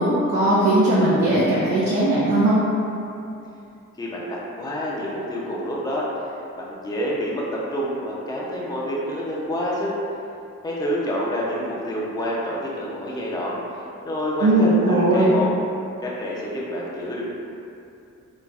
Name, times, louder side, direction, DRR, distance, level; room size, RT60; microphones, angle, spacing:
voice 1, 0.0-2.6 14.4-15.3, right 1 dB, 70° right, -8 dB, 0.7 m, -18 dB
voice 2, 4.0-9.9 10.6-15.5 16.0-17.3, equal, 15° left, -5 dB, 0.5 m, -28 dB
4.1 x 2.2 x 2.3 m, 2.7 s
cardioid pair, 70°, 32 cm